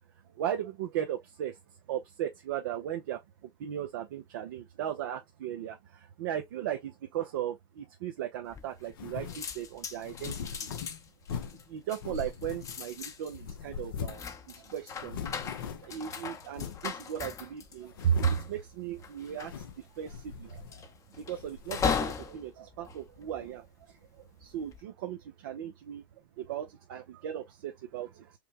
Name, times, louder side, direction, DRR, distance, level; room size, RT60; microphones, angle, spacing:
voice 1, 0.4-1.6 1.9-3.2 3.6-10.3 10.6-10.7 11.7-14.3 14.5-15.2 15.8-19.6 20.0-20.8 21.2-26.0 26.4-28.3, right 10 dB, 70° right, 0.7 m, -36 dB
sound 1, 8.5-9.0 9.3-23.8 24.4-24.8, left 6 dB, 30° left, 0.8 m, -38 dB
sound 2, 8.9-9.5 10.0-11.7 12.0-13.0 13.3-14.3 14.6-14.7 14.9-16.0 16.5-16.9 17.4-17.5 17.9-18.5 19.3-19.8 20.1-21.0 21.3-22.1, left 7 dB, 75° left, 0.8 m, -40 dB
5.0 x 2.2 x 2.9 m
hypercardioid pair, 95°, 12 cm